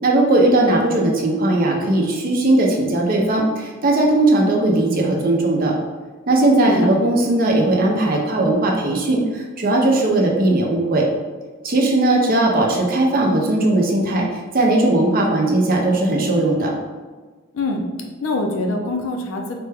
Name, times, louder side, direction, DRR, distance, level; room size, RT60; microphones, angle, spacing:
voice 1, 0.0-5.7 6.3-11.1 11.6-14.3 14.5-16.7, right 2 dB, 40° right, -1 dB, 0.6 m, -18 dB
voice 2, 18.2-19.6, left 2 dB, 65° left, 3 dB, 0.5 m, -24 dB
4.1 x 2.2 x 3.3 m, 1.4 s
head